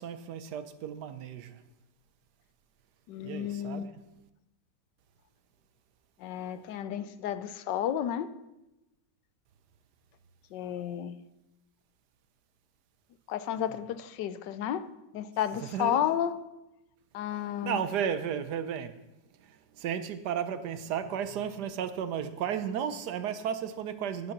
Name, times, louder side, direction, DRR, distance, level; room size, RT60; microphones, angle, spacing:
voice 1, 0.0-1.6 3.2-3.9 15.7-16.1 17.6-18.9 19.4-24.3, right 8 dB, 70° right, 1.3 m, -34 dB
voice 2, 3.1-3.9 6.2-8.3 10.5-11.2 13.3-14.8 15.1-16.3 17.1-17.8, left 10 dB, 80° left, 1.3 m, -32 dB
10.5 x 9.2 x 5.9 m
omnidirectional pair, 1.9 m